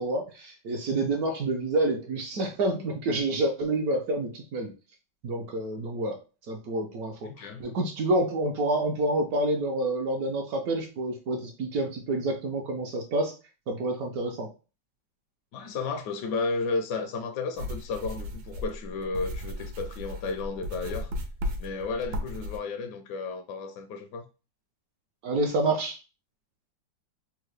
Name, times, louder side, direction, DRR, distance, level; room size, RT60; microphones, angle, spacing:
voice 1, 0.0-4.7 5.2-6.2 6.5-13.3 13.7-14.5 25.2-26.0, right 2 dB, 70° right, 1.0 m, -28 dB
voice 2, 7.2-7.7 15.5-21.1 21.6-24.3, left 4 dB, 75° left, 1.1 m, -33 dB
sound 1, 17.6-22.6, left 1 dB, 85° right, 1.3 m, -35 dB
3.5 x 2.1 x 3.1 m
omnidirectional pair, 2.0 m